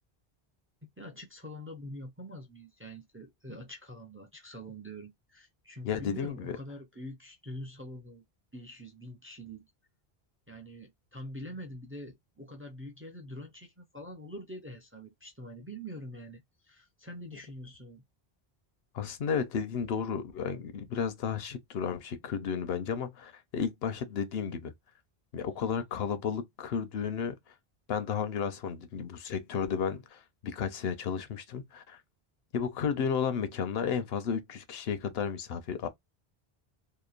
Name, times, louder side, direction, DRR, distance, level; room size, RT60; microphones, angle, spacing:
voice 1, 1.0-8.2 8.5-9.7 10.5-18.0, equal, 20° right, 0.4 m, -45 dB
voice 2, 5.8-6.6 18.9-24.7 25.3-27.4 27.9-32.0 32.5-35.9, left 7 dB, 75° left, 0.9 m, -33 dB
2.9 x 2.1 x 2.4 m
omnidirectional pair, 1.0 m